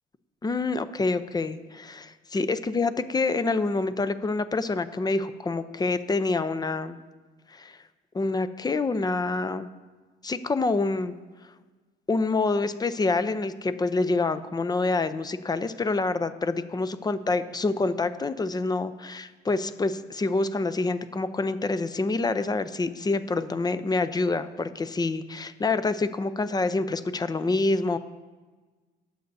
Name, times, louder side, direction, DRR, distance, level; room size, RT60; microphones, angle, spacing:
voice 1, 0.4-7.0 7.5-7.8 8.1-9.7 10.2-11.1 12.1-28.0, left 3 dB, 20° left, 12 dB, 0.6 m, -27 dB
20.0 x 7.9 x 2.7 m, 1.3 s
cardioid pair, 90°, 20 cm